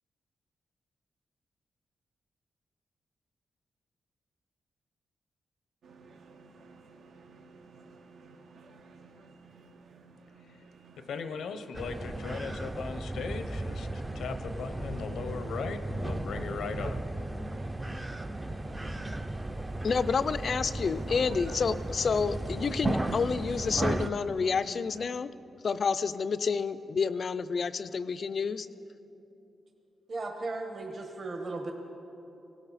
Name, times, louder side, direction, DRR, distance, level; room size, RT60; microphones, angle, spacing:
sound 1, 5.8-25.1, right 4 dB, 75° right, 0.9 m, -53 dB
voice 1, 11.0-13.9 14.1-17.0, left 5 dB, 90° left, 9 dB, 0.9 m, -38 dB
sound 2, 11.7-24.1, right 2 dB, 15° right, 0.5 m, -35 dB
voice 2, 19.8-25.3 25.6-28.7, left 5 dB, 45° left, 14 dB, 0.4 m, -29 dB
voice 3, 30.1-31.7, right 2 dB, 40° right, 3 dB, 1.2 m, -36 dB
19.0 x 16.5 x 4.1 m, 2.9 s
wide cardioid pair, 145°, 0 cm